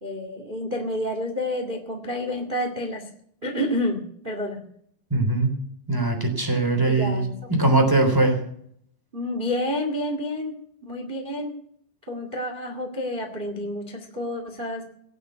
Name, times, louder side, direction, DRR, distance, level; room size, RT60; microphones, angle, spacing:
voice 1, 0.0-3.1 3.4-4.6 6.9-7.3 9.1-10.6 10.8-11.5 12.1-14.8, left 1 dB, 55° right, 4 dB, 0.5 m, -29 dB
voice 2, 5.1-5.5 5.9-8.4, right 2 dB, 5° right, 4 dB, 2.6 m, -21 dB
18.0 x 7.1 x 9.4 m, 0.66 s
omnidirectional pair, 4.8 m